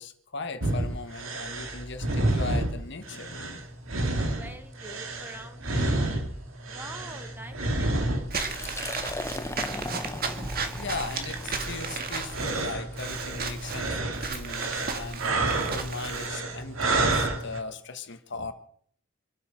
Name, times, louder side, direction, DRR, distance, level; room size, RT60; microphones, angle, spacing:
voice 1, 0.0-3.7 10.3-18.5, left 4 dB, 60° left, 8 dB, 1.5 m, -38 dB
sound 1, 0.6-17.6, right 2 dB, 80° right, 2.6 m, -30 dB
voice 2, 4.3-6.2 6.7-9.4, right 1 dB, 10° right, 6 dB, 1.6 m, -47 dB
Liquid, 8.2-14.0, left 2 dB, 15° left, 0.7 m, -39 dB
Walk footsteps / Squeak, 8.3-16.3, right 4 dB, 50° right, 1.9 m, -35 dB
25.5 x 8.8 x 6.1 m, 0.63 s
head